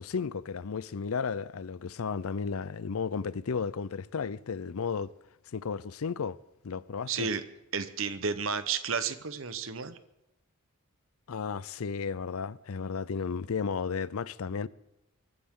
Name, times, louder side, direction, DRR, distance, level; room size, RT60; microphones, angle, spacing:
voice 1, 0.0-5.1 5.5-6.4 6.6-7.3 11.3-14.7, left 5 dB, 80° left, 0.5 m, -33 dB
voice 2, 7.1-7.4 7.7-10.0, right 5 dB, 65° right, 1.0 m, -32 dB
24.0 x 13.5 x 3.7 m
head